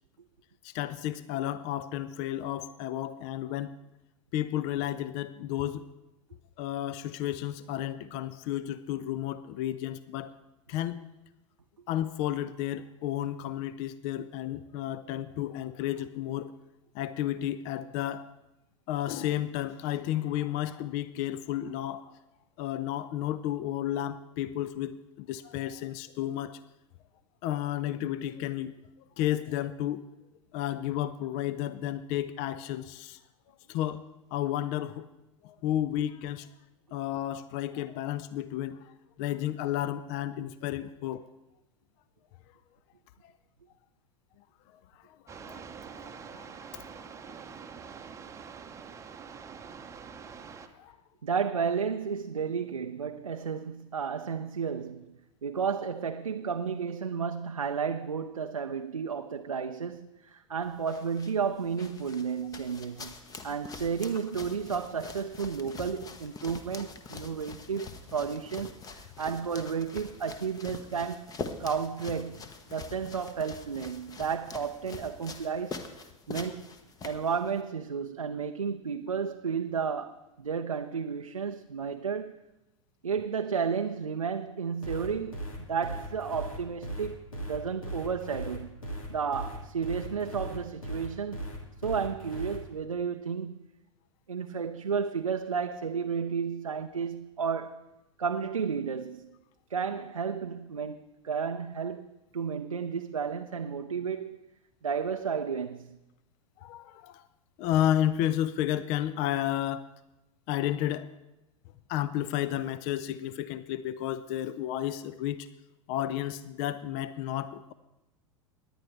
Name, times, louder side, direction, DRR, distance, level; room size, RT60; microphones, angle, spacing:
voice 1, 0.6-3.8 4.3-5.8 6.6-10.4 10.7-11.0 11.9-16.5 16.9-18.3 18.9-22.2 22.6-26.6 27.4-28.7 29.2-30.0 30.5-33.2 33.7-34.0 34.3-35.1 35.4-36.5 36.9-41.2 45.0-45.7 46.0-47.4 50.8-51.0 106.6-107.2 107.6-109.9 110.5-111.1 111.9-115.5 115.9-117.7, left 12 dB, 40° left, 0.4 m, -32 dB
sound 1, 45.3-50.7, right 6 dB, 15° right, 0.8 m, -45 dB
voice 2, 51.2-55.1 55.4-63.1 63.4-71.3 71.6-72.4 72.7-75.8 76.3-76.7 77.0-82.4 83.0-88.8 89.1-91.5 91.8-93.6 94.3-97.8 98.2-99.3 99.7-104.5 104.8-106.0, right 6 dB, 80° right, 0.5 m, -32 dB
sound 2, 60.6-77.6, left 4 dB, 20° left, 1.0 m, -45 dB
sound 3, 84.8-92.6, right 1 dB, 75° left, 2.3 m, -38 dB
18.0 x 10.5 x 3.2 m
figure-of-eight pair, 90°, 17 cm